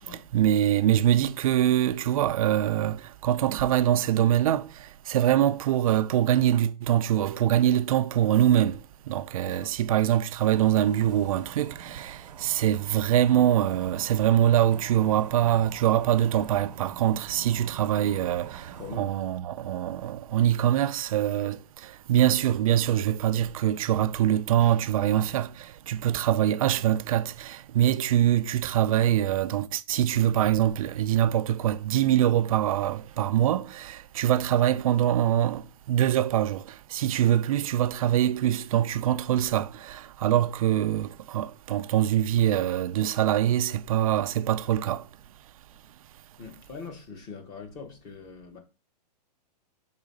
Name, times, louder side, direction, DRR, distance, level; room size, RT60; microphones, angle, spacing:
voice 1, 0.1-45.1, right 11 dB, 55° right, 0.4 m, -24 dB
voice 2, 9.5-9.8 18.7-19.2 46.4-48.6, left 5 dB, 20° left, 0.8 m, -42 dB
sound 1, 10.4-19.0, right 8 dB, 75° right, 0.8 m, -45 dB
4.9 x 3.7 x 5.2 m
hypercardioid pair, 165°, 21 cm